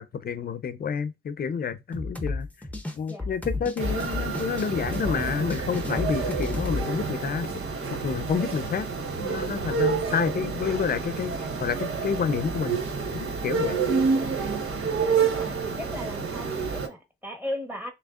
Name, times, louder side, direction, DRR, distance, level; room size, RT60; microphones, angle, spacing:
voice 1, 0.0-2.5 2.9-7.6 7.9-8.9 9.2-11.3 11.6-12.8 13.1-13.8, left 6 dB, 45° left, 0.6 m, -29 dB
sound 1, 1.9-6.8, left 2 dB, 5° left, 0.7 m, -33 dB
sound 2, 3.8-16.9, right 5 dB, 85° right, 1.1 m, -29 dB
voice 2, 9.2-9.7 10.4-10.8 14.1-14.4 15.0-17.9, left 1 dB, 10° right, 1.2 m, -38 dB
6.3 x 2.9 x 2.4 m
wide cardioid pair, 140°, 21 cm